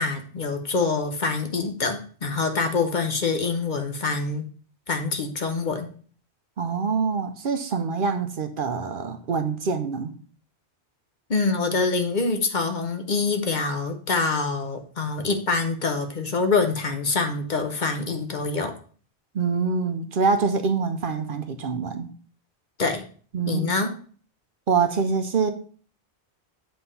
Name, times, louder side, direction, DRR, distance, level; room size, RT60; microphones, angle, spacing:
voice 1, 0.0-4.4 4.9-5.9 11.3-18.7 22.8-23.0 23.5-23.9, left 4 dB, 50° left, 5 dB, 0.9 m, -25 dB
voice 2, 6.6-10.1 19.3-22.1 23.3-23.7 24.7-25.5, right 5 dB, 55° right, 8 dB, 0.8 m, -25 dB
7.8 x 3.4 x 5.3 m, 0.43 s
omnidirectional pair, 1.1 m